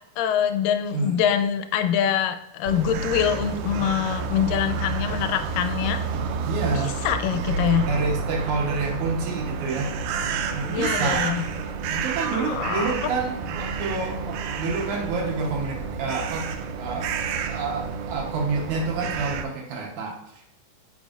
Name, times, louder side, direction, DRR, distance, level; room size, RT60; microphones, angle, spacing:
voice 1, 0.2-6.1 6.7-7.8 10.7-11.5 12.3-13.0, left 9 dB, 85° left, 8 dB, 2.2 m, -24 dB
sound 1, 2.6-19.4, right 5 dB, 85° right, 2.2 m, -29 dB
voice 2, 6.4-6.9 7.9-9.9 10.5-11.4 11.9-16.5 16.8-17.1 17.5-20.4, right 4 dB, 70° right, 0 dB, 2.3 m, -28 dB
9.2 x 5.2 x 2.5 m, 0.78 s
omnidirectional pair, 3.8 m